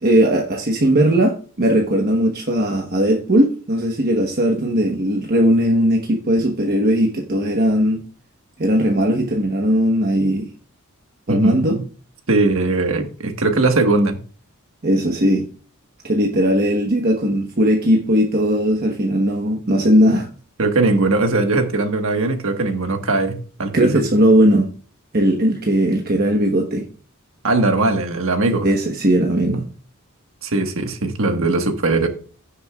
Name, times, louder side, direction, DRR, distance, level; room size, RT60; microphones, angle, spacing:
voice 1, 0.0-8.0 8.6-10.5 11.3-11.8 14.8-15.5 16.0-20.3 23.7-24.7 25.1-26.9 28.6-29.7, equal, 45° right, 1.1 m, -18 dB
voice 2, 11.3-11.8 12.3-14.2 20.6-23.9 27.4-28.7 29.5-29.6 30.4-32.1, right 2 dB, 65° right, 1.4 m, -19 dB
16.0 x 6.6 x 2.3 m
head